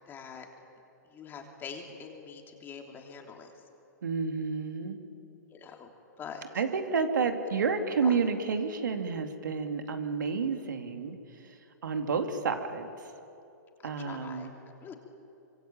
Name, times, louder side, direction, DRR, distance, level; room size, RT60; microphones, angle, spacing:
voice 1, 0.1-0.5 1.1-3.5 5.5-5.9 6.2-6.4 7.5-7.6 8.0-8.2 14.0-14.9, left 6 dB, 20° left, 2 dB, 3.3 m, -44 dB
voice 2, 4.0-5.0 6.5-11.6 11.8-12.9 13.8-14.5, right 5 dB, 80° right, 5 dB, 2.6 m, -30 dB
25.0 x 24.0 x 8.9 m, 2.7 s
hypercardioid pair, 135°, 10 cm